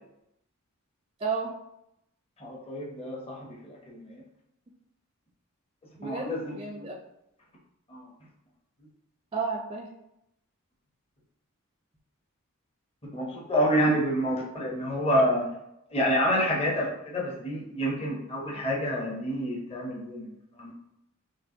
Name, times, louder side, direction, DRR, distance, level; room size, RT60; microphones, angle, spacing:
voice 1, 1.2-1.5 6.0-6.9 9.3-9.9, right 4 dB, 25° right, 1 dB, 0.4 m, -32 dB
voice 2, 2.4-4.2 6.0-6.9 7.9-8.1 13.0-15.5 15.9-20.7, equal, 30° left, -3 dB, 0.8 m, -28 dB
6.0 x 2.4 x 2.7 m, 0.82 s
head